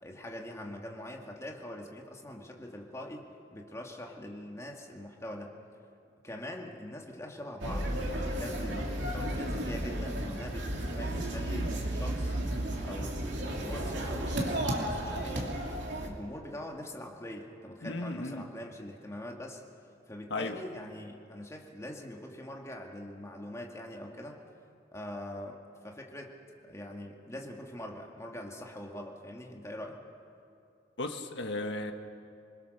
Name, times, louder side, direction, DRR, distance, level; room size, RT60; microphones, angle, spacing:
voice 1, 0.0-5.5 6.2-12.3 12.8-15.5 16.0-19.6 20.1-24.4 24.9-26.3 26.6-30.0, left 1 dB, 15° left, 1 dB, 2.2 m, -43 dB
sound 1, 7.6-16.1, right 1 dB, 80° right, 2.8 m, -33 dB
voice 2, 17.8-18.5 20.3-20.6 31.0-31.9, left 2 dB, 75° left, 5 dB, 1.6 m, -35 dB
27.0 x 20.5 x 6.7 m, 2.5 s
head